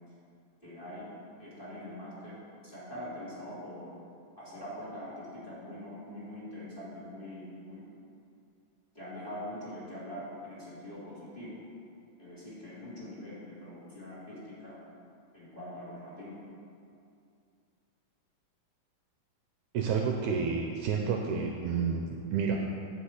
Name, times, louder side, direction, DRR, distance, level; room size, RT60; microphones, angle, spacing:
voice 1, 0.6-1.0 1.4-2.4 2.6-4.0 4.4-7.8 8.9-11.6 12.2-14.8 15.3-16.4, left 1 dB, 15° left, -9 dB, 2.8 m, -43 dB
voice 2, 19.7-22.6, right 5 dB, 75° right, 1 dB, 1.9 m, -30 dB
9.8 x 5.4 x 8.1 m, 2.4 s
omnidirectional pair, 3.8 m